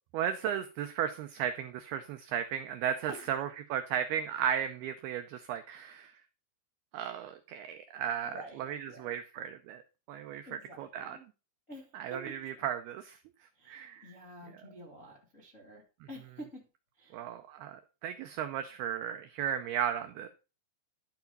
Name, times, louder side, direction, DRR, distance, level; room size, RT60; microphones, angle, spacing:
voice 1, 0.1-6.1 6.9-9.8 10.1-11.2 11.9-13.2 13.7-14.1 17.1-20.3, right 9 dB, 85° right, 7 dB, 2.2 m, -35 dB
voice 2, 8.2-9.2 10.4-11.2 11.7-12.6 13.5-16.7 17.0-17.3, right 1 dB, 55° left, -3 dB, 0.8 m, -49 dB
12.0 x 4.8 x 5.3 m, 0.32 s
omnidirectional pair, 5.4 m